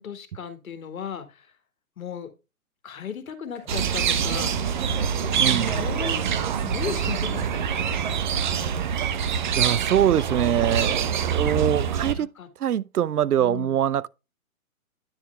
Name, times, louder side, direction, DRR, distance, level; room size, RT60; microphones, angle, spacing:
voice 1, 0.0-1.5 2.0-2.3 2.8-4.8 5.1-6.3 6.6-7.9 10.3-10.4 12.1-12.5 13.4-13.8, left 7 dB, 70° left, 2.1 m, -36 dB
sound 1, 3.5-6.5 6.7-9.1, left 3 dB, 5° left, 2.7 m, -50 dB
sound 2, 3.7-12.1, right 7 dB, 35° right, 0.7 m, -25 dB
voice 2, 5.4-5.7 9.6-12.3 12.6-14.1, right 10 dB, 90° right, 0.6 m, -23 dB
9.9 x 7.2 x 2.3 m
hypercardioid pair, 145°, 43 cm